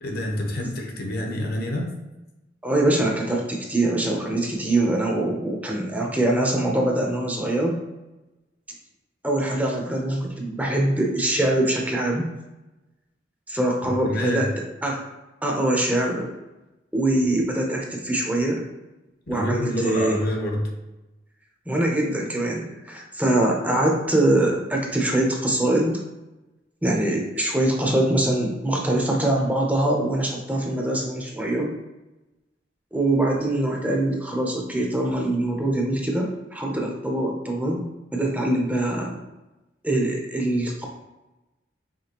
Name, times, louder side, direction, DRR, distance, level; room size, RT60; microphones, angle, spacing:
voice 1, 0.0-1.9 14.0-14.5 19.3-20.7, left 1 dB, 55° left, 1 dB, 0.9 m, -27 dB
voice 2, 2.6-7.7 9.2-12.3 13.5-14.5 14.8-15.0 15.4-16.3 16.9-18.6 19.3-20.2 21.7-26.0 26.8-31.7 32.9-37.8 38.1-39.2 39.8-40.9, right 1 dB, 10° right, -1 dB, 0.7 m, -23 dB
5.1 x 3.3 x 2.9 m, 1.0 s
head